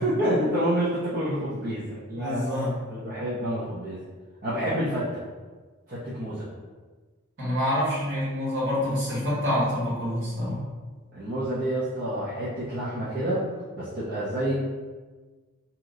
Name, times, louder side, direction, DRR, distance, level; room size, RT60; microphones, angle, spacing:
voice 1, 0.0-2.5 2.9-4.0 4.4-5.2 5.9-6.5 11.1-13.5 13.7-14.5, right 1 dB, 45° right, -10 dB, 0.7 m, -28 dB
voice 2, 2.1-2.7 7.4-10.6, left 1 dB, 60° right, -8 dB, 1.4 m, -27 dB
2.9 x 2.2 x 3.7 m, 1.3 s
head